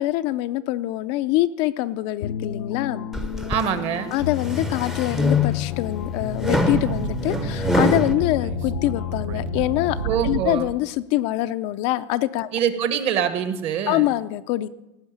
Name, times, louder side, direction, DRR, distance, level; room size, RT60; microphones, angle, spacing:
voice 1, 0.0-3.1 4.1-10.0 10.2-12.5 13.9-14.7, left 15 dB, 45° left, 11 dB, 0.5 m, -24 dB
sound 1, 2.2-10.3, left 11 dB, 85° left, 0.8 m, -32 dB
sound 2, 3.1-3.7 4.2-5.8 6.4-8.1, left 2 dB, ahead, 0.7 m, -24 dB
voice 2, 3.5-4.1 10.0-10.7 12.5-14.1, right 8 dB, 35° right, 10 dB, 1.2 m, -24 dB
Speech / Wind, 5.9-10.8, right 8 dB, 85° right, 0.9 m, -32 dB
17.0 x 6.3 x 8.7 m, 0.96 s
supercardioid pair, 160°, 16 cm